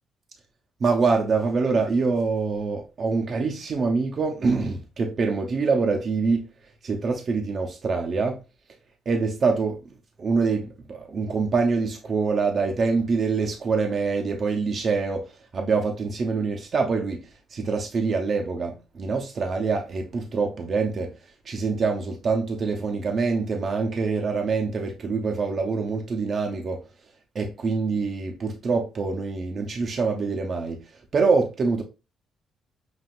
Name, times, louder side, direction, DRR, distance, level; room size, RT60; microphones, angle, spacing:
voice 1, 0.8-6.4 6.8-8.4 9.1-9.8 10.2-15.3 15.5-17.2 17.5-21.1 21.5-26.8 27.3-30.8 31.1-31.8, right 4 dB, 50° right, 0.7 m, -25 dB
5.9 x 2.4 x 2.4 m
cardioid pair, 90°, 0 cm